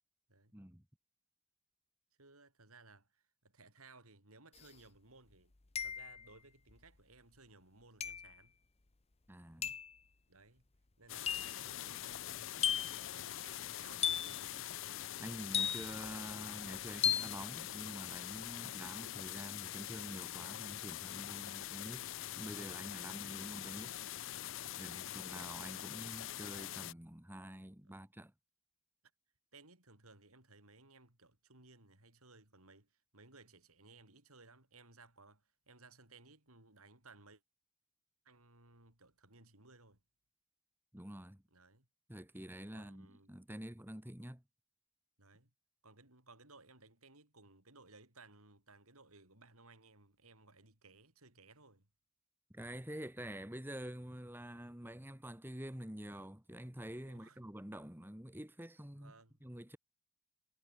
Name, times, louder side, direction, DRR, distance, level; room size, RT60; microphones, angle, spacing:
voice 1, 0.5-0.8 9.3-9.7 15.2-22.1 22.4-24.1 24.8-28.3 40.9-41.4 42.1-44.4 52.5-59.1 59.4-59.8, equal, 10° right, 1.6 m, -47 dB
voice 2, 2.2-5.5 5.8-8.6 10.3-10.7 11.0-14.7 22.9-23.2 24.8-25.2 27.8-28.0 29.5-37.4 38.3-40.0 41.5-41.9 42.7-43.3 45.2-45.5 45.8-51.9 57.0-57.4 58.9-59.4, right 3 dB, 80° right, 7.0 m, -61 dB
sound 1, 4.6-4.7 5.8-6.3 8.0-8.3 9.6-9.9 11.3-11.6 12.6-13.1 14.0-14.4 15.5-16.1 17.0-17.4, left 8 dB, 30° left, 0.8 m, -35 dB
sound 2, 11.1-26.9, left 12 dB, 60° left, 0.5 m, -44 dB
head